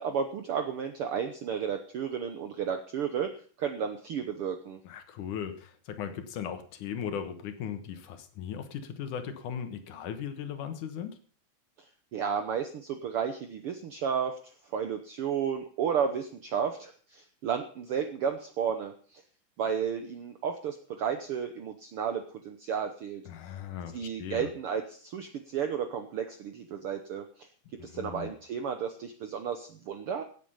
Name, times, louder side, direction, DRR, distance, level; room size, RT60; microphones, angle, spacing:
voice 1, 0.0-3.3 3.6-4.8 12.1-14.4 14.7-19.2 19.6-23.2 23.9-27.5 27.8-30.2, right 7 dB, 65° right, 7 dB, 1.5 m, -32 dB
voice 2, 4.8-11.2 23.3-24.5 27.8-28.3, left 8 dB, 80° left, 9 dB, 2.8 m, -38 dB
17.0 x 8.3 x 5.6 m, 0.43 s
omnidirectional pair, 3.5 m